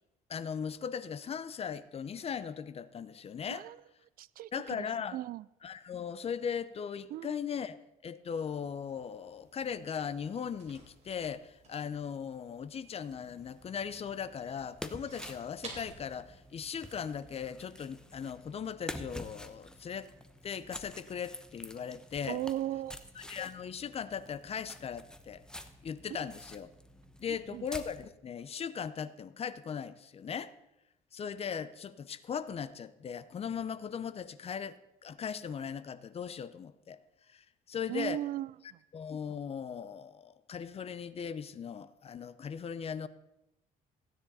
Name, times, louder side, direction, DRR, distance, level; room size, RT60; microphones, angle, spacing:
voice 1, 0.3-3.6 4.5-5.2 5.6-20.1 20.4-22.4 23.2-25.4 25.8-26.7 27.2-30.5 31.1-37.0 37.3-38.2 38.9-43.1, left 7 dB, 35° left, 15 dB, 0.7 m, -38 dB
voice 2, 3.5-3.8 4.2-5.5 7.1-7.4 22.3-23.0 27.3-27.6 37.9-38.8, right 13 dB, 60° right, 20 dB, 0.4 m, -37 dB
sound 1, 8.6-17.5, right 3 dB, 40° right, 3.8 m, -55 dB
sound 2, 13.1-28.1, left 1 dB, 5° left, 0.9 m, -49 dB
16.0 x 9.6 x 4.2 m, 0.91 s
cardioid pair, 110°, 17 cm